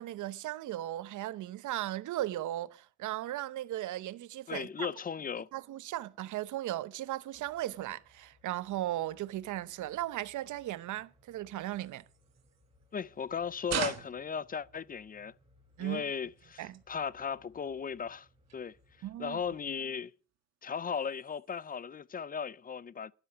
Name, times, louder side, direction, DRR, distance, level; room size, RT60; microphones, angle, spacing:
voice 1, 0.0-4.9 5.5-12.0 15.8-16.0 16.6-16.8 19.0-19.4, right 14 dB, 75° right, 0.9 m, -37 dB
voice 2, 4.5-5.5 12.9-15.3 15.8-18.3 18.5-18.8 19.2-20.1 20.6-23.1, left 6 dB, 30° left, 0.5 m, -36 dB
sound 1, 7.3-19.8, left 1 dB, 20° right, 4.6 m, -66 dB
sound 2, 11.6-13.2 13.6-15.2 15.7-17.0 17.4-17.8 18.1-18.2 18.4-18.9 19.3-19.5 19.9-20.4 20.7-21.8, right 9 dB, 60° right, 1.8 m, -43 dB
12.0 x 11.0 x 5.0 m
cardioid pair, 90°, 30 cm